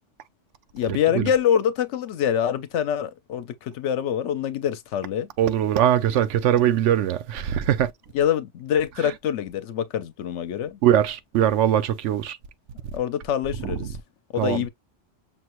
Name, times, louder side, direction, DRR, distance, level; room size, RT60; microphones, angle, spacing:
voice 1, 0.7-5.3 8.1-10.8 12.9-14.0 14.3-14.7, left 9 dB, 80° left, 0.9 m, -25 dB
voice 2, 5.4-7.9 10.8-12.4 14.4-14.6, right 10 dB, 85° right, 0.9 m, -21 dB
5.8 x 2.1 x 2.9 m
omnidirectional pair, 1.2 m